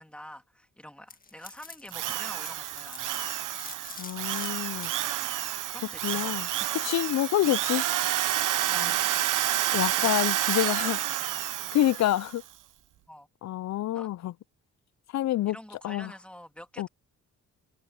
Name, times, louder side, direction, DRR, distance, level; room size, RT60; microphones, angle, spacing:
voice 1, 0.0-3.2 5.7-6.8 7.5-7.6 8.0-8.1 8.7-10.7 11.1-11.7 13.1-13.3 13.9-14.1 15.5-16.9, equal, 5° left, 2.9 m, -47 dB
sound 1, 1.1-10.8, left 4 dB, 25° left, 1.9 m, -47 dB
Drill, 1.9-12.3, right 13 dB, 80° right, 0.8 m, -29 dB
voice 2, 4.0-4.9 6.0-7.8 8.7-8.9 9.7-11.0 11.7-12.4 13.4-14.3 15.1-15.6 15.8-16.1 16.8-16.9, left 13 dB, 60° left, 0.4 m, -27 dB
cardioid pair, 100°, 31 cm